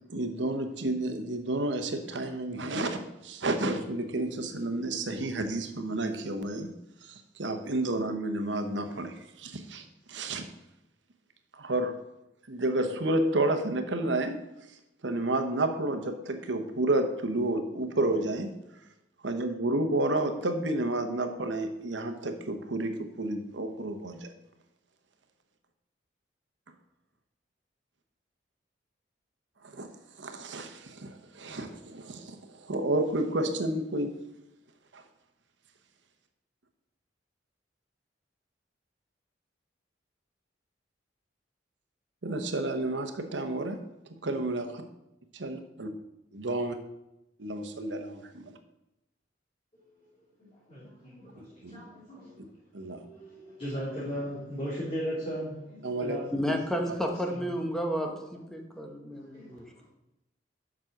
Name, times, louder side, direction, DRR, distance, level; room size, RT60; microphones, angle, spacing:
voice 1, 0.1-6.7 7.0-10.4 11.5-11.9 12.5-14.4 15.0-18.5 19.2-24.3 29.6-29.9 30.2-34.1 34.9-35.0 42.2-43.8 44.2-44.6 45.4-45.9 46.3-46.7 47.4-48.6 51.4-51.8 52.7-53.0 55.8-56.2 56.9-57.0, right 2 dB, 75° right, 1.1 m, -31 dB
voice 2, 49.7-52.4 52.8-57.6 59.1-59.9, equal, 30° left, 2.8 m, -38 dB
voice 3, 56.3-59.6, equal, 5° left, 1.0 m, -32 dB
7.5 x 6.2 x 5.9 m
head